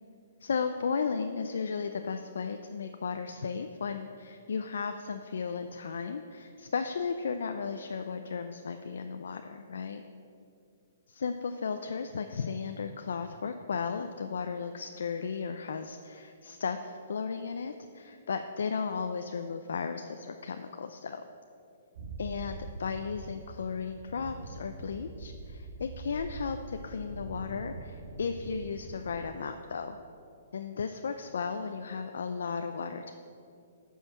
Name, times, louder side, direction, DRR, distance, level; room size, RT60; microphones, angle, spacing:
voice 1, 0.4-10.0 11.1-21.2 22.2-30.0 30.5-33.1, left 5 dB, 80° left, 7 dB, 0.5 m, -35 dB
sound 1, 21.9-29.3, right 3 dB, 55° right, 1.7 m, -44 dB
9.7 x 5.6 x 7.2 m, 2.5 s
hypercardioid pair, 165°, 0 cm